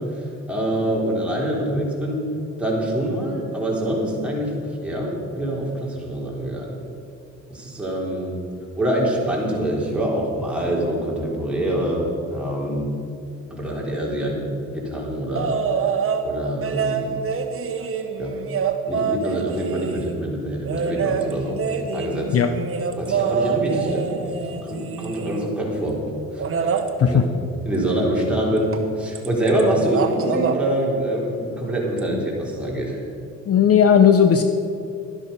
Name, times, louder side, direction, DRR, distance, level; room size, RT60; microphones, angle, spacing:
voice 1, 0.0-2.2 2.6-6.8 7.5-8.4 8.8-12.9 13.5-15.6 16.2-17.1 18.2-18.3 18.9-21.6 21.9-22.4 23.0-26.0 26.3-26.7 27.0-27.2 27.7-33.0, right 1 dB, 5° right, -4 dB, 3.7 m, -25 dB
sound 1, 15.4-16.3 16.6-20.2 20.7-25.5 26.4-26.9 28.7-28.9 29.2-29.6 29.9-30.6 32.0-32.1, right 6 dB, 45° right, 1.1 m, -26 dB
voice 2, 33.5-34.4, left 8 dB, 50° left, 8 dB, 0.7 m, -15 dB
12.5 x 11.0 x 5.5 m, 2.5 s
cardioid pair, 90°, 30 cm